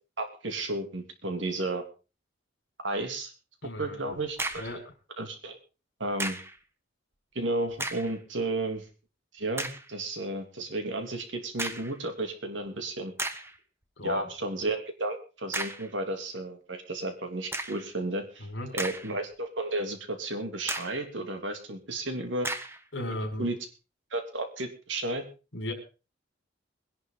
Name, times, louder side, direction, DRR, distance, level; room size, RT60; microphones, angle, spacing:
voice 1, 0.2-1.8 2.8-3.3 3.8-4.6 5.2-5.6 6.0-6.4 7.3-8.9 9.3-13.1 14.0-18.5 18.7-22.5 23.4-23.5 24.1-25.2, right 2 dB, 70° right, 5 dB, 3.1 m, -33 dB
voice 2, 3.6-4.2 4.5-4.8 14.0-14.3 18.4-18.7 22.9-23.5 25.5-25.7, left 1 dB, 65° left, 5 dB, 5.1 m, -35 dB
sound 1, 4.3-4.8 6.2-6.6 7.7-8.2 8.8-8.9 9.6-9.9 11.6-12.0 12.7-12.8 13.2-13.6 15.5-15.9 17.5-17.9 18.5-19.3 19.7-19.8 20.7-21.1 22.4-22.8, right 2 dB, 15° right, 1.3 m, -35 dB
22.0 x 11.0 x 3.9 m, 0.33 s
head